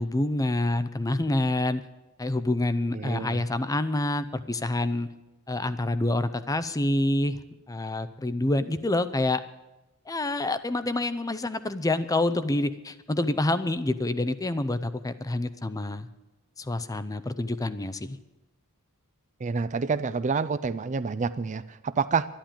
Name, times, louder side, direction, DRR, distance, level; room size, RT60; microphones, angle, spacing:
voice 1, 0.0-1.8 2.2-5.1 5.5-7.4 7.7-9.4 10.1-16.1 16.6-18.2, left 2 dB, 15° left, 13 dB, 0.6 m, -27 dB
voice 2, 2.9-3.4 19.4-22.3, right 5 dB, 35° right, 14 dB, 0.4 m, -28 dB
11.5 x 11.5 x 8.8 m, 1.0 s
head